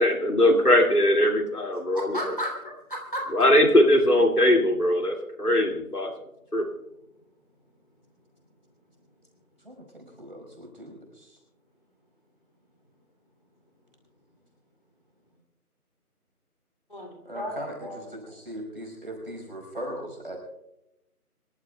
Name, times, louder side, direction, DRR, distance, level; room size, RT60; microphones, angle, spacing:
voice 1, 0.0-2.2 3.3-6.1 6.5-6.6, left 1 dB, 80° left, 2 dB, 2.5 m, -20 dB
voice 2, 1.9-3.2 16.9-18.0, equal, 35° left, 0 dB, 2.9 m, -34 dB
voice 3, 9.6-11.4 17.3-20.4, equal, 35° right, 1 dB, 5.1 m, -39 dB
25.5 x 15.0 x 2.3 m, 0.91 s
figure-of-eight pair, 175°, 45 cm